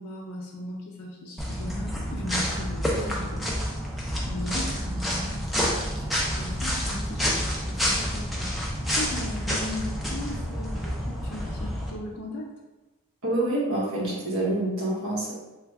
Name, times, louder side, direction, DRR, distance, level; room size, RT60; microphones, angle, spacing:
voice 1, 0.0-3.5 4.3-8.6 9.0-12.5, left 1 dB, 85° left, -2 dB, 0.5 m, -37 dB
sound 1, 1.4-11.9, equal, ahead, 0.4 m, -29 dB
voice 2, 13.2-15.3, right 1 dB, 70° right, -5 dB, 1.1 m, -27 dB
3.3 x 2.2 x 3.4 m, 1.1 s
head